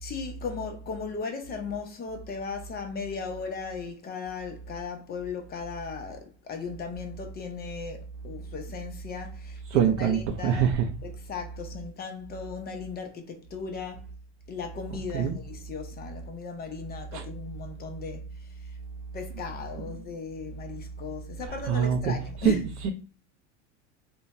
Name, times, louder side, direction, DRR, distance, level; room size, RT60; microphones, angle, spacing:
voice 1, 0.0-10.7 11.0-14.1 14.5-18.7 19.1-22.9, left 5 dB, 25° left, 0.6 m, -37 dB
voice 2, 9.7-10.9 15.1-15.4 17.1-17.2 21.7-22.2 22.4-22.9, right 8 dB, 70° right, 0.6 m, -24 dB
2.6 x 2.2 x 3.0 m
supercardioid pair, 115°, 37 cm